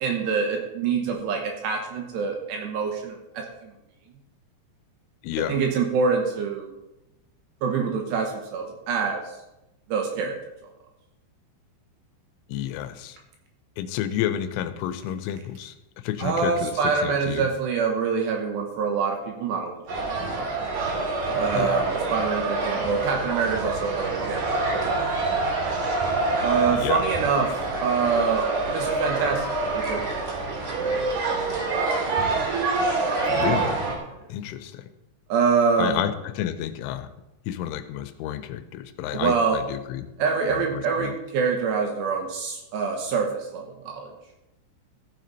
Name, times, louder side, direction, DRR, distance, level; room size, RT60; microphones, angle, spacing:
voice 1, 0.0-3.5 5.5-6.7 7.6-9.2 9.9-10.4 16.2-19.8 20.3-20.4 21.3-25.2 26.4-30.0 30.7-31.6 35.3-36.0 39.1-39.6 40.2-44.1, right 5 dB, 75° right, 2 dB, 2.9 m, -25 dB
voice 2, 5.2-5.6 12.5-13.2 13.8-15.7 16.0-17.5 21.5-21.9 26.7-27.0 33.2-33.8 34.3-34.9 35.8-37.1 37.5-40.1 40.5-41.1, left 11 dB, 85° left, 11 dB, 3.1 m, -30 dB
sound 1, 19.9-34.0, right 3 dB, 50° right, 2.7 m, -26 dB
14.5 x 7.6 x 4.0 m, 0.95 s
omnidirectional pair, 5.6 m